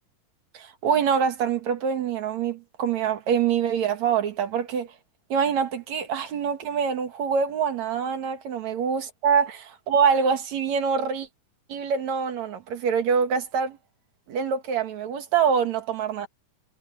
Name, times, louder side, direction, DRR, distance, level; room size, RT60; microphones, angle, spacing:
voice 1, 0.5-4.9 5.3-11.3 11.7-13.8 14.3-16.3, right 7 dB, 55° right, 2.9 m, -25 dB
omnidirectional pair, 4.0 m